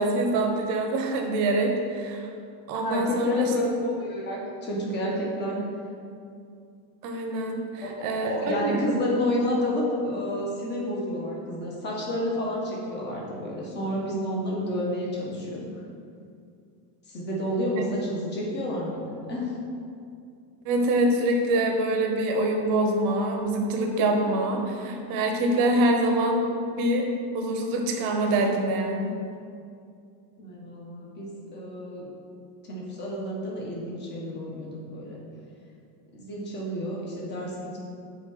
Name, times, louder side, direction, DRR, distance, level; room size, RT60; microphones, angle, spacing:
voice 1, 0.0-2.3 2.7-3.5 7.0-8.8 17.8-17.9 20.6-27.1 27.3-29.2, right 1 dB, 40° right, 2 dB, 1.0 m, -25 dB
voice 2, 2.8-3.6 4.0-5.6 7.8-15.7 17.1-19.6 30.4-32.1 32.6-35.2 36.1-37.8, left 1 dB, 20° left, -3 dB, 1.3 m, -30 dB
6.3 x 4.9 x 6.4 m, 2.4 s
cardioid pair, 170°, 48 cm